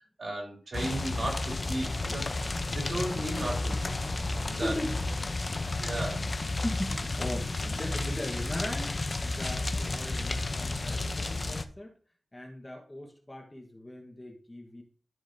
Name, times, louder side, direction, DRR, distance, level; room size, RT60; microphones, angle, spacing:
voice 1, 0.2-2.3 2.7-4.0 4.4-4.7 5.8-6.3, right 1 dB, 45° right, 2.7 m, -35 dB
sound 1, 0.7-11.7, left 2 dB, 30° left, 0.6 m, -32 dB
voice 2, 4.0-5.3 5.9-11.9 12.3-14.8, left 1 dB, 15° left, 1.1 m, -39 dB
13.5 x 5.0 x 2.6 m
wide cardioid pair, 165°, 0 cm